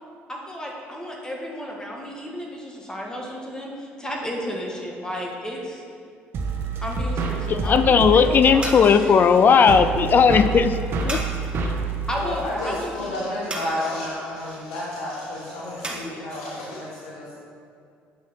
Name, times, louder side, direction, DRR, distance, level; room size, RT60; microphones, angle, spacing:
voice 1, 0.3-5.8 6.8-9.2 12.1-13.4, equal, 15° left, -1 dB, 1.7 m, -33 dB
sound 1, 6.3-13.0, right 4 dB, 55° right, 1.0 m, -28 dB
sound 2, 6.8-16.0, right 2 dB, 20° right, 1.5 m, -39 dB
voice 2, 7.5-10.8 11.0-11.2, left 6 dB, 45° left, 11 dB, 0.4 m, -16 dB
voice 3, 12.1-17.4, left 1 dB, 90° left, -7 dB, 1.4 m, -31 dB
8.4 x 5.9 x 4.3 m, 2.3 s
supercardioid pair, 80°, 5 cm